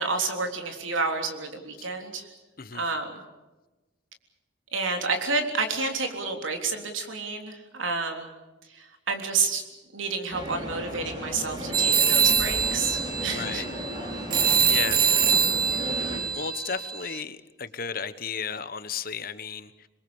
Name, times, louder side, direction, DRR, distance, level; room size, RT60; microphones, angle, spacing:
voice 1, 0.0-2.3 2.7-3.2 4.7-8.3 8.7-9.6 9.9-13.6, right 4 dB, 75° right, 4 dB, 3.6 m, -29 dB
sound 1, 10.3-16.2, equal, 25° right, 5.7 m, -35 dB
sound 2, 11.7-17.2, right 6 dB, 45° right, 2.0 m, -24 dB
voice 2, 13.3-13.7 14.7-15.1 16.3-19.9, left 6 dB, 45° left, 13 dB, 1.1 m, -34 dB
27.0 x 22.0 x 7.1 m, 1.1 s
head